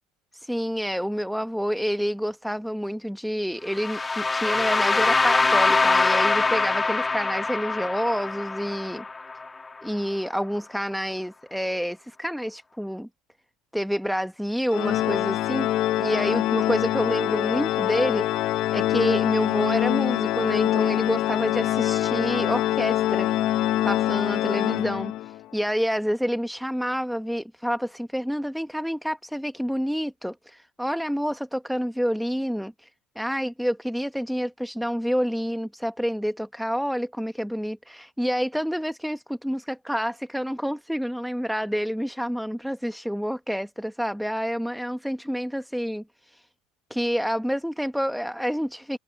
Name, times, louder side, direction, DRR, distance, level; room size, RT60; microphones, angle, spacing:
voice 1, 0.3-9.0 9.8-13.1 13.7-15.7 16.0-18.3 18.7-23.3 23.8-32.9 33.1-46.5 46.9-49.0, equal, ahead, 1.2 m, -28 dB
sound 1, 3.7-9.7, left 3 dB, 20° left, 2.1 m, -23 dB
Organ, 14.7-25.4, left 14 dB, 60° left, 0.9 m, -24 dB
hypercardioid pair, 85°, 0 cm